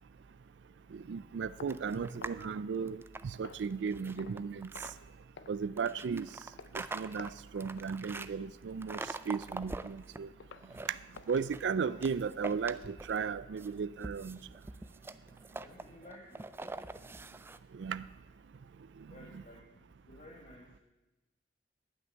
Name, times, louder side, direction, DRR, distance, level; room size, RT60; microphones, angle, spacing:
voice 1, 0.9-4.7 5.5-6.3 6.7-10.3 10.9-11.0 11.3-14.4 17.7-18.0, right 6 dB, 90° right, 16 dB, 0.4 m, -35 dB
sound 1, 1.6-3.1 3.4-3.8 4.2-4.5 4.7-5.1 5.4-5.6 5.9-6.2 6.6-6.8 7.2-7.5 7.8-8.0 8.4-8.6 9.1-9.2 9.7-9.8 10.4-10.7 11.1-12.6, left 5 dB, 90° left, 0.5 m, -53 dB
sound 2, 1.7-2.4 2.8-4.9 5.8-8.3 8.8-10.2 10.6-11.7 12.0-13.3 13.6-17.6, right 2 dB, 15° right, 0.3 m, -44 dB
voice 2, 15.6-16.5 19.1-20.8, left 1 dB, 45° left, -1 dB, 1.6 m, -54 dB
11.0 x 6.2 x 8.9 m, 1.1 s
head